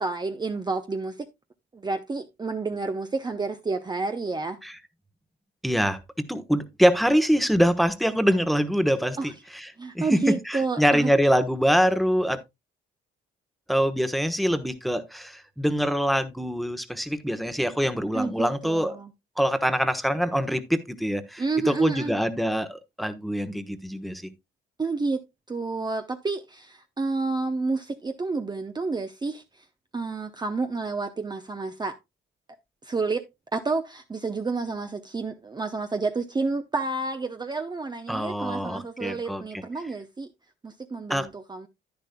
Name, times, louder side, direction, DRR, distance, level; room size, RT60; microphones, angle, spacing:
voice 1, 0.0-1.3 1.7-4.6 9.2-9.3 9.8-11.1 18.1-19.1 21.4-22.1 24.8-29.6 29.9-32.0 32.8-40.3 40.6-41.7, right 3 dB, 20° right, 0.7 m, -30 dB
voice 2, 5.6-9.7 9.9-12.4 13.7-19.0 19.4-24.2 38.1-39.4 41.1-41.3, equal, ahead, 1.0 m, -24 dB
10.5 x 10.0 x 2.2 m
cardioid pair, 90°, 20 cm